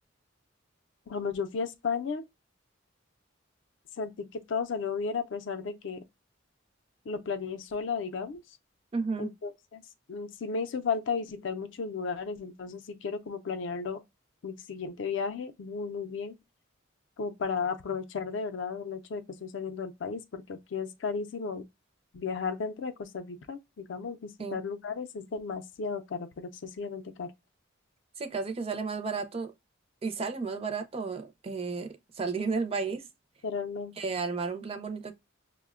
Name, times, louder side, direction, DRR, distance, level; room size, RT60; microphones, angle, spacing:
voice 1, 1.1-2.2 4.0-6.0 7.1-8.4 9.2-9.8 10.1-14.0 14.4-16.4 17.2-21.6 22.1-27.3 33.4-33.9, left 5 dB, 65° left, 0.4 m, -34 dB
voice 2, 8.9-9.3 24.4-24.6 28.2-29.5 30.0-33.1 34.0-35.1, right 4 dB, 30° right, 0.4 m, -33 dB
5.5 x 2.1 x 2.3 m
head